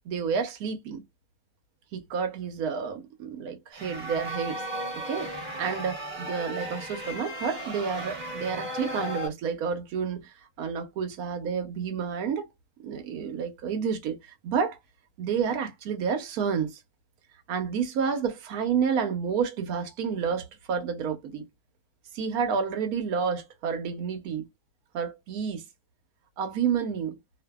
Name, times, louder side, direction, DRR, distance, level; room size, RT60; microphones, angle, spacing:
voice 1, 0.0-1.0 1.9-4.6 4.9-12.5 12.8-14.8 15.2-16.8 17.5-21.4 22.1-24.4 24.9-25.6 26.4-27.2, right 6 dB, 70° right, 1.1 m, -30 dB
sound 1, 3.7-9.3, right 1 dB, 30° right, 1.0 m, -35 dB
2.6 x 2.6 x 2.2 m
omnidirectional pair, 1.8 m